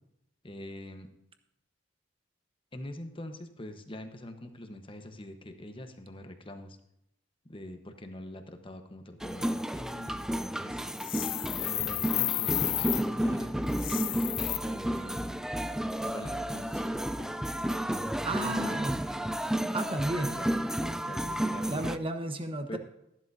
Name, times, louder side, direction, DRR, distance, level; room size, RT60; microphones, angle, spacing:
voice 1, 0.4-1.1 2.7-6.8 7.4-10.8 11.6-13.9 14.5-15.5 16.0-17.3 18.4-18.8 20.4-21.9 22.7-22.8, left 1 dB, 30° left, 6 dB, 1.1 m, -44 dB
sound 1, 9.2-22.0, right 1 dB, 5° right, 0.3 m, -32 dB
sound 2, 10.9-13.0 13.7-14.6, left 17 dB, 85° left, 0.5 m, -31 dB
voice 2, 18.2-19.0 19.7-20.4 21.7-22.8, right 1 dB, 30° right, 6 dB, 1.1 m, -33 dB
13.5 x 11.5 x 2.7 m, 0.83 s
head